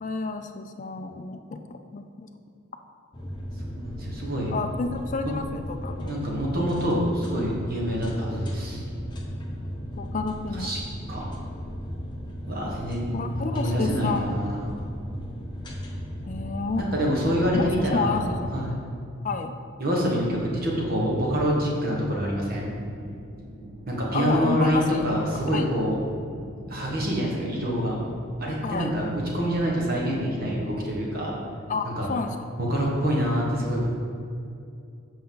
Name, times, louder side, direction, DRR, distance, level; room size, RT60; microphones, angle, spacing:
voice 1, 0.0-2.3 4.5-6.2 10.0-10.7 13.1-14.3 16.3-16.9 17.5-18.5 19.2-19.5 24.1-25.0 25.5-25.6 28.6-28.9 31.7-32.4, left 4 dB, 35° left, 6 dB, 0.4 m, -30 dB
sound 1, 3.1-18.6, equal, 20° left, 0.8 m, -36 dB
voice 2, 3.8-4.5 6.0-8.8 10.5-10.8 11.1-11.2 12.5-14.7 16.8-18.2 18.5-18.8 19.8-22.7 23.9-26.0 26.7-27.9 28.4-29.1 29.3-31.4 31.8-32.1 32.7-33.9, equal, 45° right, -3 dB, 1.4 m, -26 dB
sound 2, 22.5-30.9, right 1 dB, 25° right, 1.4 m, -43 dB
8.0 x 5.5 x 3.9 m, 2.5 s
head